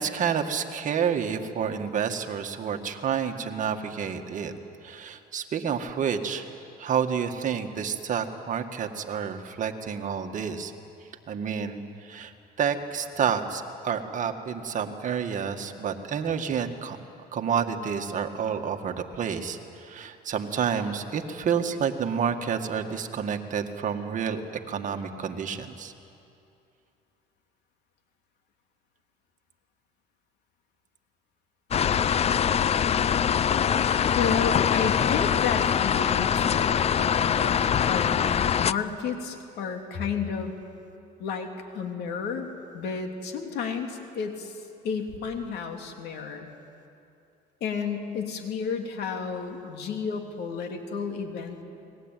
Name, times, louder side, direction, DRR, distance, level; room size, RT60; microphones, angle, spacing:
voice 1, 0.0-4.5 4.8-6.5 6.8-10.7 11.3-12.3 12.6-17.0 17.3-24.4 24.7-25.9 33.8-34.0, right 7 dB, 50° right, 5 dB, 1.9 m, -29 dB
sound 1, 31.7-38.7, left 8 dB, 40° left, 0.6 m, -23 dB
voice 2, 34.1-37.5 37.9-40.6 41.2-42.5 42.7-46.5 47.6-51.6, left 6 dB, 75° left, 4 dB, 3.1 m, -32 dB
29.5 x 20.5 x 9.2 m, 2.6 s
cardioid pair, 110°, 17 cm